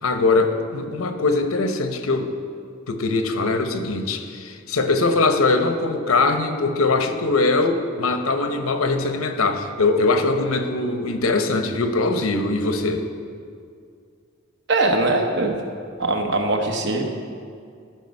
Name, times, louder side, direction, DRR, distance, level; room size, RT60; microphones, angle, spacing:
voice 1, 0.0-2.3 2.9-13.1, left 3 dB, 85° left, 7 dB, 0.8 m, -21 dB
voice 2, 14.7-15.6 16.0-17.1, right 2 dB, 55° right, 3 dB, 1.0 m, -21 dB
13.5 x 5.1 x 5.3 m, 2.2 s
head